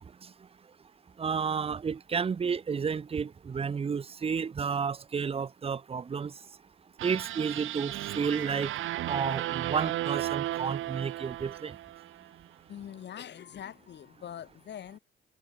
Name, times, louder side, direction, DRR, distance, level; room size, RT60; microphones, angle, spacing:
voice 1, 1.2-6.3 7.0-8.7 9.1-11.8, right 6 dB, 30° right, 0.6 m, -31 dB
sound 1, 7.0-12.3, right 14 dB, 80° right, 1.7 m, -34 dB
voice 2, 12.7-15.0, left 9 dB, 60° left, 3.0 m, -43 dB
cardioid pair, 90°, 20 cm